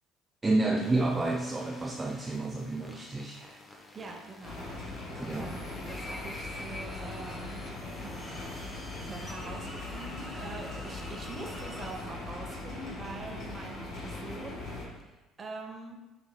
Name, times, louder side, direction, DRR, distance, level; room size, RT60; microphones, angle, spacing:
voice 1, 0.4-3.6 5.2-5.6, right 2 dB, 20° right, 1 dB, 0.4 m, -30 dB
sound 1, 0.8-11.9, left 1 dB, 15° left, 0.8 m, -48 dB
voice 2, 3.9-4.8 5.4-7.6 7.9-16.0, right 3 dB, 35° right, 2 dB, 0.8 m, -44 dB
sound 2, 4.4-14.9, left 2 dB, 55° left, 1.5 m, -40 dB
6.0 x 3.7 x 2.2 m, 1.1 s
hypercardioid pair, 65°, 0 cm